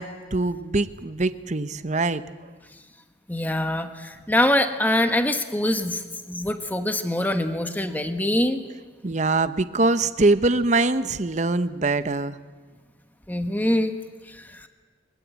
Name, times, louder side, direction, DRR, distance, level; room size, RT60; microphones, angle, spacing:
voice 1, 0.0-2.2 9.0-12.4, right 2 dB, 40° right, 12 dB, 0.9 m, -23 dB
voice 2, 3.3-6.0 6.3-8.6 13.3-13.9 14.5-14.7, left 1 dB, 10° left, 7 dB, 1.3 m, -24 dB
22.5 x 22.0 x 8.3 m, 1.5 s
head